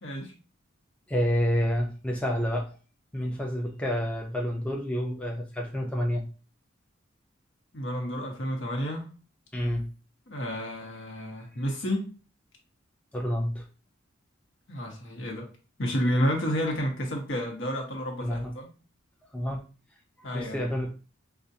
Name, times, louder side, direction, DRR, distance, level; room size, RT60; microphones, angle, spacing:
voice 1, 0.0-0.3 7.7-9.1 10.3-12.1 14.7-15.5 15.8-18.7 20.2-20.7, equal, 65° left, 0 dB, 1.2 m, -30 dB
voice 2, 1.1-2.7 3.1-6.3 9.5-9.9 13.1-13.6 18.2-18.5 19.3-19.6 20.2-20.9, equal, 5° left, -1 dB, 0.5 m, -29 dB
5.1 x 2.4 x 2.7 m, 0.35 s
head